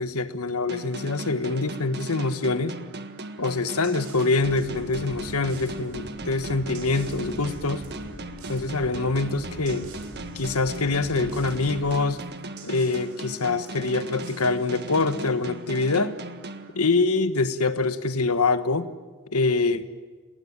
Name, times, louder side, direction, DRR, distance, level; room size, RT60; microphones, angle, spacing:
voice 1, 0.0-2.7 3.4-7.8 8.5-9.9 10.3-12.2 12.6-16.2 16.7-18.9 19.3-19.9, left 3 dB, 80° left, 11 dB, 1.5 m, -25 dB
sound 1, 0.7-17.3, right 2 dB, 50° right, 1.6 m, -38 dB
sound 2, 3.5-15.7, right 7 dB, 90° right, 4.7 m, -52 dB
sound 3, 4.4-12.0, left 1 dB, 35° left, 2.3 m, -42 dB
29.5 x 19.5 x 9.8 m, 1.4 s
head